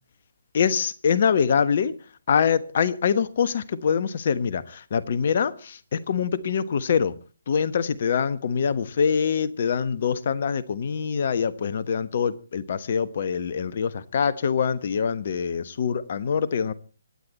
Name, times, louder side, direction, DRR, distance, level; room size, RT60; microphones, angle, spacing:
voice 1, 0.5-1.9 2.3-7.1 7.5-16.7, left 6 dB, 45° left, 1.2 m, -24 dB
25.5 x 9.9 x 4.3 m
figure-of-eight pair, 140°, 0 cm